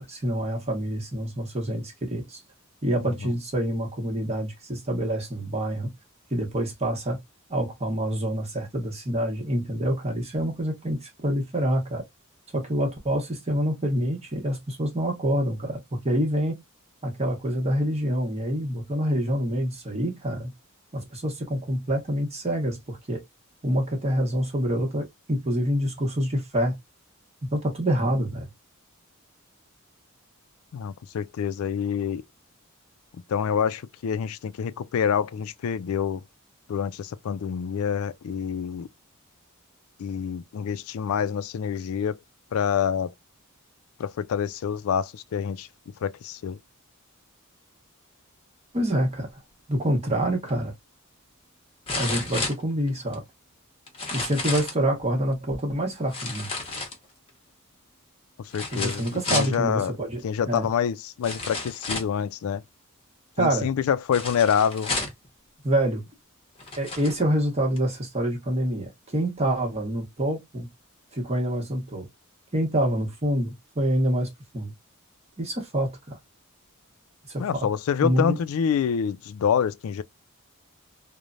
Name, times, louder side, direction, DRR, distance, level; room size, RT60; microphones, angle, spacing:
voice 1, 0.0-2.4 2.8-5.9 6.3-7.2 7.5-12.0 12.5-16.6 17.0-20.5 20.9-23.2 23.6-26.8 27.4-28.5 48.7-49.3 49.7-50.7 51.9-53.2 54.1-56.5 58.7-60.6 63.4-63.7 65.6-66.0 66.7-70.7 71.1-72.1 72.5-74.7 75.4-76.2 77.3-77.7 78.0-78.4, right 1 dB, 30° right, 0.9 m, -26 dB
voice 2, 30.7-32.2 33.3-36.2 36.7-38.9 40.0-42.2 42.5-43.1 44.0-45.7 46.0-46.6 58.4-59.9 60.2-62.6 63.4-64.9 77.4-80.0, left 7 dB, 70° left, 0.3 m, -27 dB
sound 1, 50.5-50.6 51.9-53.2 53.9-54.8 56.1-57.3 58.5-59.6 60.6-60.7 61.2-62.2 64.1-65.3 66.1-66.2 66.6-67.2 67.8-67.9, left 3 dB, 25° left, 0.8 m, -31 dB
3.0 x 2.1 x 2.5 m
head